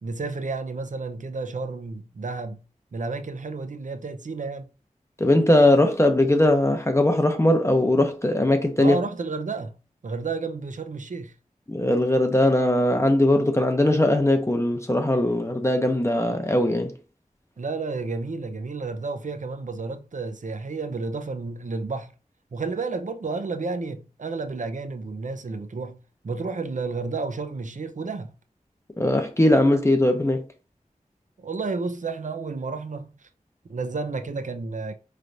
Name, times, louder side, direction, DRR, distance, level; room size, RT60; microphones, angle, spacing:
voice 1, 0.0-2.6 2.9-4.7 8.8-9.8 10.0-11.3 17.6-22.1 22.5-26.0 26.2-28.3 31.4-33.3 33.7-34.9, right 3 dB, 60° right, 0.5 m, -31 dB
voice 2, 5.2-9.0 11.7-16.9 29.0-30.4, left 1 dB, 20° left, 0.6 m, -20 dB
4.4 x 3.3 x 2.6 m
wide cardioid pair, 45°, 14 cm